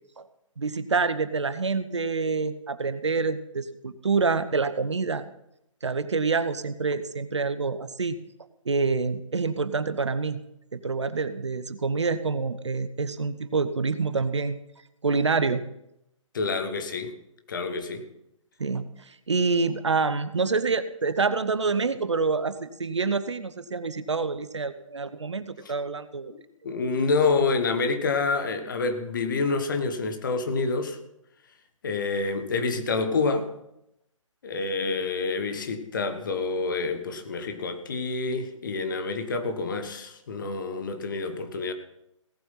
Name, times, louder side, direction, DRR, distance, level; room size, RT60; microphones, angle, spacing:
voice 1, 0.6-5.2 5.8-8.2 8.6-10.4 10.7-14.6 15.0-15.6 18.6-26.3 27.0-27.1, right 4 dB, 60° right, 0.9 m, -27 dB
voice 2, 16.3-17.2 17.5-18.1 26.3-31.0 31.8-33.5 34.4-41.7, left 4 dB, 40° left, 1.4 m, -27 dB
17.5 x 7.9 x 5.7 m
figure-of-eight pair, 140°, 17 cm